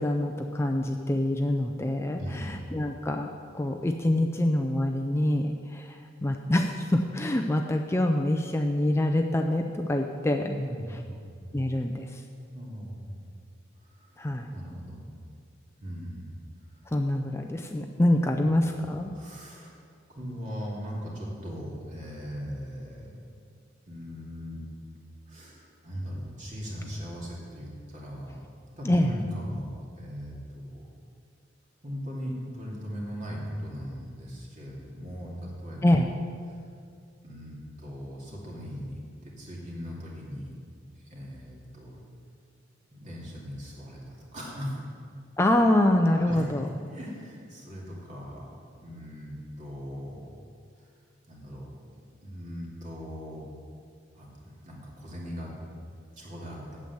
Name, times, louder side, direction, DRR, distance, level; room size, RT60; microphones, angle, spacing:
voice 1, 0.0-3.3 3.5-10.5 11.5-12.2 14.2-14.6 16.9-19.1 28.8-29.1 35.8-36.1 45.4-46.7, left 1 dB, 15° left, 4 dB, 0.4 m, -25 dB
voice 2, 2.1-2.5 10.5-11.3 12.5-13.2 13.9-14.1 14.5-15.1 15.8-16.3 18.7-19.7 20.1-23.1 23.9-24.6 25.3-28.4 28.7-30.9 31.8-35.3 35.6-36.0 36.5-36.6 37.2-40.5 41.1-42.0 42.9-44.8 46.1-46.5 46.9-50.3 50.8-50.9 51.3-51.6 51.9-53.4 54.1-55.6 56.1-56.8, equal, 40° right, -3 dB, 2.4 m, -39 dB
8.4 x 7.7 x 7.9 m, 2.2 s
head